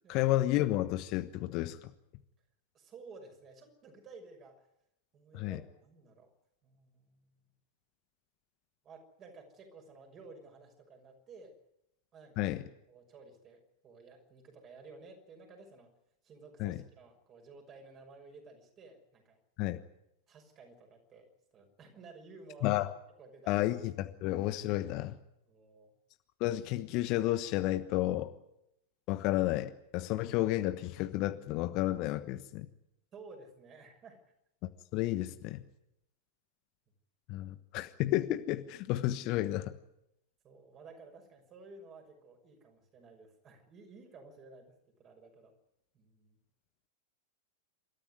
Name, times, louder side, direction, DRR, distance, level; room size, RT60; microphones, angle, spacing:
voice 1, 0.1-1.9 5.3-5.6 12.4-12.6 16.6-16.8 19.6-19.8 22.6-22.9 23.5-25.2 26.4-28.3 29.1-32.7 34.9-35.6 37.3-39.7, left 15 dB, 40° left, 11 dB, 1.2 m, -31 dB
voice 2, 2.7-4.7 5.1-6.3 6.6-7.3 8.8-11.5 12.1-12.5 12.9-15.9 16.2-19.4 20.3-22.9 23.2-23.6 25.5-25.9 33.1-34.2 40.4-45.5 45.9-46.4, right 3 dB, 30° right, 4 dB, 6.0 m, -54 dB
28.5 x 14.0 x 9.6 m, 0.83 s
figure-of-eight pair, 95°, 0 cm